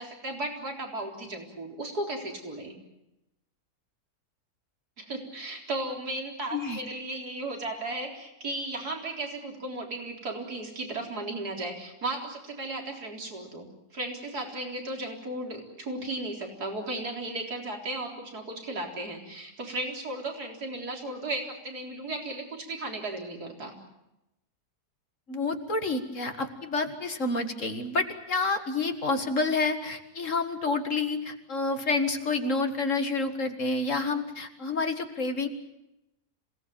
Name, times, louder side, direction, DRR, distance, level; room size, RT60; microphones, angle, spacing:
voice 1, 0.0-2.7 5.0-13.7 13.9-23.7, right 2 dB, 70° right, 2 dB, 4.5 m, -35 dB
voice 2, 25.3-35.5, left 3 dB, 50° left, 6 dB, 2.1 m, -29 dB
27.0 x 18.0 x 8.8 m, 0.91 s
omnidirectional pair, 1.7 m